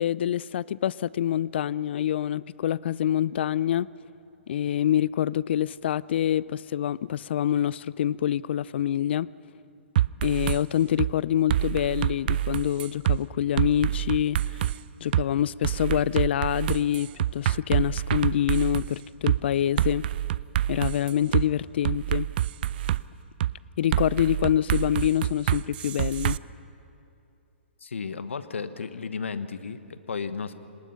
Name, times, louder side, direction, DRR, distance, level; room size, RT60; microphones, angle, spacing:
voice 1, 0.0-3.9 4.5-9.3 10.2-14.7 15.0-20.1 20.7-22.3 23.8-26.4, left 10 dB, 60° left, 22 dB, 0.4 m, -26 dB
sound 1, 10.0-10.6 11.0-11.1 11.5-13.2 13.6-14.8 15.1-15.2 15.6-18.9 19.3-19.4 19.8-21.4 21.8-23.0 23.4-23.5 23.9-26.4, right 13 dB, 50° right, 0.4 m, -26 dB
voice 2, 27.8-30.5, left 5 dB, 90° left, 12 dB, 1.1 m, -34 dB
27.5 x 19.0 x 5.7 m, 2.8 s
hypercardioid pair, 140°, 7 cm